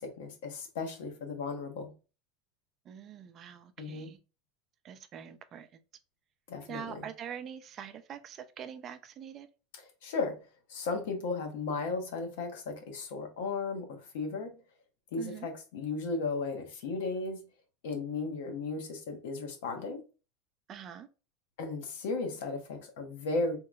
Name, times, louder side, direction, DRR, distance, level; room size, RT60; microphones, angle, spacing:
voice 1, 0.0-1.9 3.8-4.1 6.5-7.0 10.0-14.6 15.1-17.4 17.8-20.0 21.6-23.6, left 3 dB, 80° left, 1.0 m, -35 dB
voice 2, 2.8-4.2 4.8-5.8 6.7-9.5 15.2-15.5 20.7-21.1, right 8 dB, 35° right, 0.4 m, -44 dB
3.8 x 2.9 x 2.3 m
supercardioid pair, 140°, 0 cm